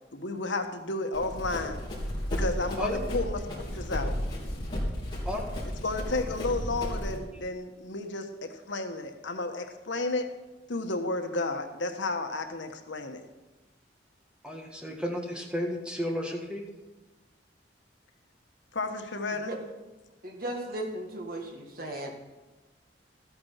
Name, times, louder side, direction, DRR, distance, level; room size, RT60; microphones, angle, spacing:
voice 1, 0.1-1.8 2.3-3.4 3.7-4.1 5.8-10.3 10.7-13.2 18.7-19.5, left 2 dB, 85° left, 6 dB, 1.3 m, -32 dB
Run, 1.1-7.2, equal, 25° left, 3.3 m, -33 dB
voice 2, 14.4-16.6, left 1 dB, 5° right, 1 dB, 1.7 m, -33 dB
voice 3, 20.2-22.1, right 1 dB, 50° right, 2 dB, 1.9 m, -36 dB
13.0 x 8.7 x 5.7 m, 1.1 s
head